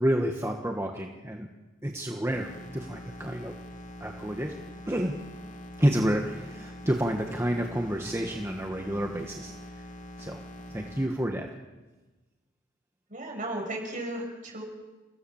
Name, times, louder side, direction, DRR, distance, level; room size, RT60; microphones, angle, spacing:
voice 1, 0.0-1.5 1.8-3.5 4.0-4.5 4.9-5.2 5.8-9.8 10.2-10.4 10.7-11.5, equal, 15° right, 2 dB, 1.4 m, -29 dB
sound 1, 2.3-11.1, left 1 dB, 40° left, 2.1 m, -44 dB
voice 2, 13.1-14.6, right 1 dB, 40° right, 1 dB, 6.4 m, -35 dB
29.5 x 16.0 x 7.2 m, 1.2 s
head